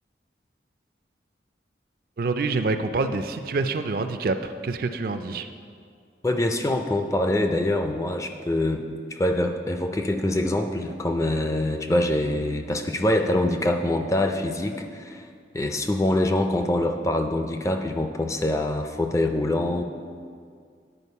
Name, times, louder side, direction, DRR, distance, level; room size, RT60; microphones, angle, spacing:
voice 1, 2.2-5.5, right 3 dB, 50° right, 8 dB, 0.4 m, -26 dB
voice 2, 6.2-8.8 9.1-15.3 15.5-19.8, left 1 dB, 15° left, 5 dB, 0.4 m, -24 dB
9.9 x 4.5 x 5.4 m, 2.1 s
head